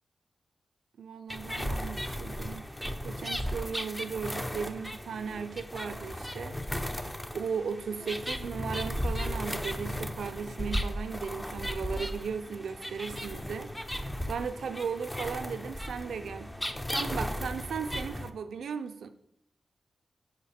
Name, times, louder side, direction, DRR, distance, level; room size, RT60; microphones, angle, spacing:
voice 1, 1.0-2.7 3.0-6.6 7.3-13.7 14.3-16.5 16.9-19.1, right 6 dB, 85° right, 0.4 m, -36 dB
sound 1, 1.3-18.3, equal, 15° left, 0.6 m, -36 dB
6.5 x 4.2 x 4.1 m
supercardioid pair, 40°, 0 cm